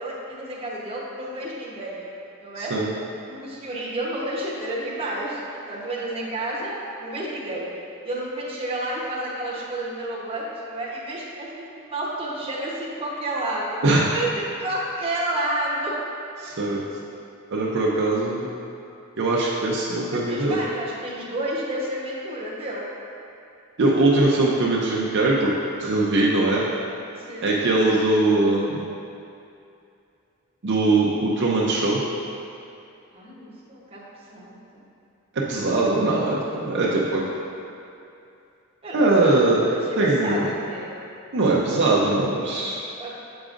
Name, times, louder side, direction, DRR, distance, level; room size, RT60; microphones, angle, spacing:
voice 1, 0.0-2.1 2.4-2.7 3.3-7.7 8.0-13.8 14.1-16.0 20.1-22.9 27.1-27.5 33.1-34.0 34.3-34.9 36.7-36.9 38.8-41.0 43.0-43.1, right 1 dB, 25° right, -5 dB, 0.9 m, -30 dB
voice 2, 2.6-2.9 13.8-14.1 16.4-16.8 17.5-18.5 19.2-20.6 23.8-25.5 25.8-26.6 27.4-28.8 30.6-32.0 35.3-37.2 38.9-39.6 40.0-40.5 41.3-42.8, right 2 dB, 55° right, -5 dB, 0.6 m, -21 dB
7.8 x 5.0 x 2.5 m, 2.6 s
head